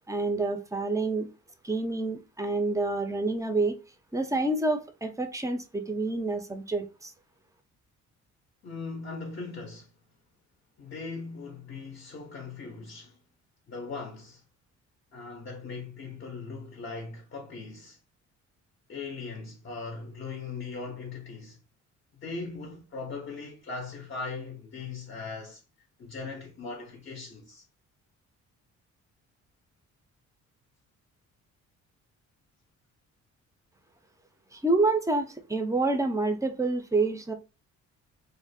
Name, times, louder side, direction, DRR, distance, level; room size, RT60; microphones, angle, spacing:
voice 1, 0.1-1.3 1.6-3.7 4.1-7.1 34.5-37.3, right 2 dB, 10° right, 0.4 m, -28 dB
voice 2, 8.6-9.9 10.8-13.2 13.7-14.4 15.1-18.0 18.9-21.6 22.1-25.6 26.0-27.7, left 4 dB, 40° left, 0.5 m, -39 dB
2.4 x 2.1 x 2.5 m
cardioid pair, 90°, 30 cm